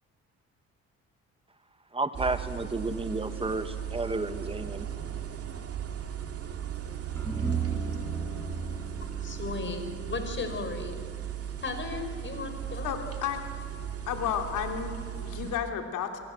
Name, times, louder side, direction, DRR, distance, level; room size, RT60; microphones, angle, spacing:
voice 1, 1.9-4.9, right 2 dB, 20° right, 10 dB, 1.7 m, -31 dB
sound 1, 2.1-15.6, right 9 dB, 50° right, 2.4 m, -36 dB
sound 2, 7.1-13.7, equal, 10° left, 7.2 m, -43 dB
voice 2, 9.2-11.0 11.6-12.9, left 4 dB, 40° left, 6 dB, 5.0 m, -35 dB
voice 3, 12.8-13.4 14.1-16.2, left 8 dB, 85° left, 5 dB, 3.0 m, -32 dB
28.5 x 22.5 x 8.0 m, 2.1 s
cardioid pair, 90°, 30 cm